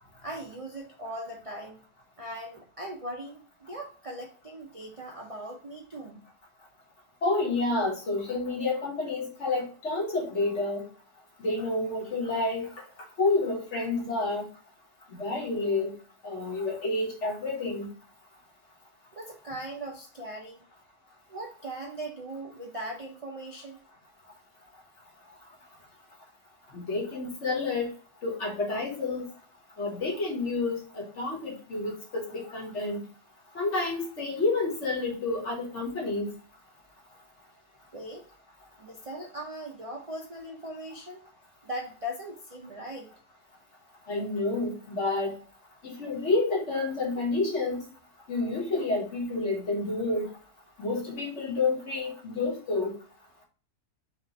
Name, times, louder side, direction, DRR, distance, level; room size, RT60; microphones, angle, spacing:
voice 1, 0.2-1.8 2.2-6.2 19.1-20.6 21.3-23.8 37.9-38.2 38.8-41.2 41.6-43.1, right 1 dB, 50° right, -1 dB, 0.4 m, -39 dB
voice 2, 7.2-10.8 11.4-12.8 13.2-14.5 15.2-15.9 16.2-17.9 26.7-27.9 28.2-29.2 29.8-33.0 33.5-36.3 44.1-45.3 45.8-47.8 48.3-50.3 50.8-52.9, left 3 dB, 50° left, -1 dB, 1.6 m, -29 dB
4.8 x 2.5 x 4.0 m, 0.39 s
omnidirectional pair, 1.7 m